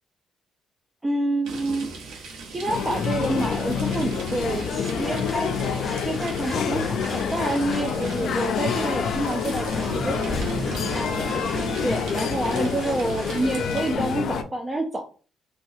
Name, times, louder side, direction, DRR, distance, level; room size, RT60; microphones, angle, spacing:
voice 1, 1.0-1.9 2.5-5.6 6.0-10.4 10.9-11.5 11.8-15.0, right 1 dB, 20° right, 2 dB, 0.5 m, -28 dB
sound 1, 1.4-13.9, right 2 dB, 90° right, 0.8 m, -36 dB
sound 2, 2.7-14.4, left 7 dB, 70° left, 0.4 m, -27 dB
sound 3, 5.0-13.7, left 2 dB, 30° left, 1.1 m, -40 dB
4.0 x 2.3 x 2.6 m, 0.38 s
cardioid pair, 90°, 0 cm